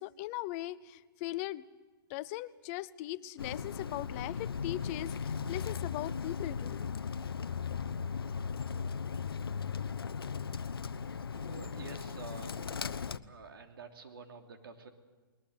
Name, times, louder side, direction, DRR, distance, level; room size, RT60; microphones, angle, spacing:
voice 1, 0.0-1.6 2.1-6.9, left 16 dB, 40° left, 18 dB, 0.7 m, -39 dB
Bird, 3.4-13.2, left 6 dB, 90° left, 0.8 m, -37 dB
voice 2, 11.3-13.0 13.3-14.9, right 4 dB, 80° right, 5 dB, 3.1 m, -49 dB
21.0 x 20.5 x 8.1 m, 1.3 s
hypercardioid pair, 130°, 12 cm